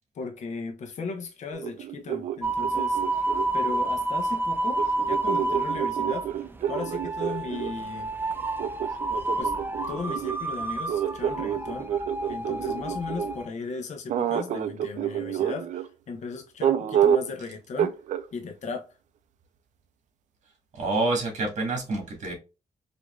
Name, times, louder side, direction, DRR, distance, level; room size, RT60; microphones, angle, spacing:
voice 1, 0.1-3.0 3.5-8.1 9.4-9.5 9.9-11.9 12.3-17.9 18.3-18.9, left 4 dB, 75° left, 1.0 m, -36 dB
sound 1, 1.5-3.9 4.8-7.7 8.6-13.4 14.1-15.9 16.6-17.4 17.8-18.2, right 10 dB, 85° right, 0.4 m, -29 dB
sound 2, 2.4-13.5, right 2 dB, 15° right, 0.5 m, -29 dB
voice 2, 20.7-22.3, right 2 dB, 70° right, 1.9 m, -27 dB
5.2 x 2.9 x 2.4 m
cardioid pair, 105°, 12 cm